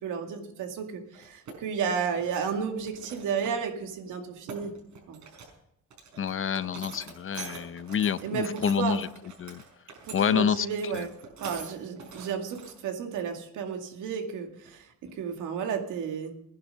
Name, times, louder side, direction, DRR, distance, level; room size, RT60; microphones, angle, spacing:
voice 1, 0.0-4.7 5.1-5.2 8.2-9.0 10.0-11.1 11.4-16.4, right 6 dB, 90° right, 4 dB, 2.2 m, -32 dB
sound 1, 1.1-1.5 1.9-2.5 2.9-3.6 3.9-4.0 4.2-5.5 5.9-12.7 13.1-13.2 14.7-14.8 15.1-15.3, right 4 dB, 70° right, 5.3 m, -44 dB
voice 2, 6.2-9.1 9.4-9.6 10.1-11.1, left 8 dB, 45° left, 15 dB, 0.7 m, -28 dB
17.0 x 10.5 x 5.6 m, 0.74 s
cardioid pair, 90°, 30 cm